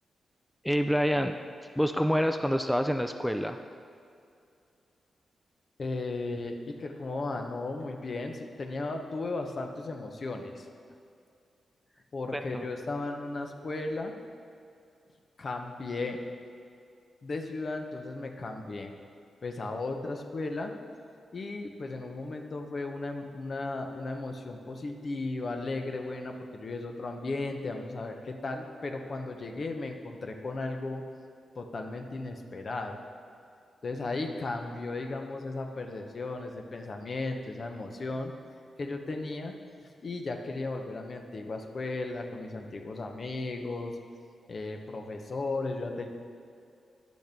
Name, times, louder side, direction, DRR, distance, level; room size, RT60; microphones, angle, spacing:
voice 1, 0.6-1.4 1.8-3.6 12.3-12.7, equal, ahead, 6 dB, 0.4 m, -27 dB
voice 2, 5.8-10.7 12.1-14.1 15.4-16.2 17.2-18.9 19.4-20.7 21.3-31.1 31.6-33.0 33.8-38.3 38.8-39.5 40.0-44.0 44.5-46.1, left 3 dB, 55° left, 4 dB, 0.8 m, -35 dB
10.0 x 6.2 x 3.5 m, 2.4 s
cardioid pair, 60°, 0 cm